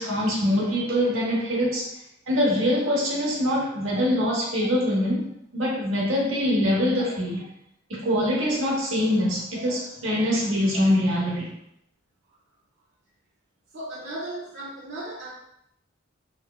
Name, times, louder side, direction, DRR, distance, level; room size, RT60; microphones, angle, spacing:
voice 1, 0.0-1.9 2.3-5.3 5.5-7.4 7.9-11.5, equal, 85° right, -4 dB, 0.9 m, -24 dB
voice 2, 13.7-15.3, right 1 dB, 60° right, -7 dB, 0.5 m, -36 dB
3.0 x 2.1 x 2.2 m, 0.74 s
head